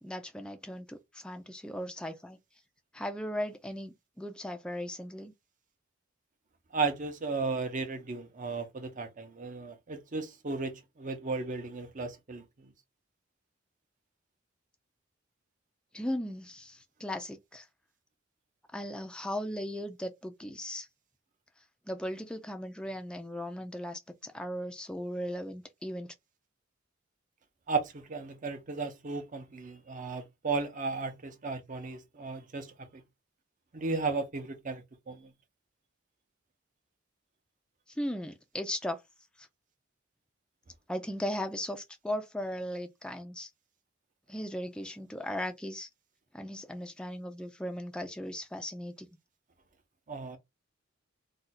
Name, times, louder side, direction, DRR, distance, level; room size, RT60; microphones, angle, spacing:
voice 1, 0.0-2.4 2.9-5.3 15.9-17.7 18.7-20.9 21.9-26.1 37.9-39.0 39.4-39.5 40.9-43.5 44.3-45.9 46.3-49.1, equal, 5° left, 0.4 m, -37 dB
voice 2, 6.7-12.7 27.7-33.0 33.7-35.3 50.1-50.4, right 4 dB, 40° right, 0.7 m, -35 dB
2.5 x 2.3 x 4.1 m
head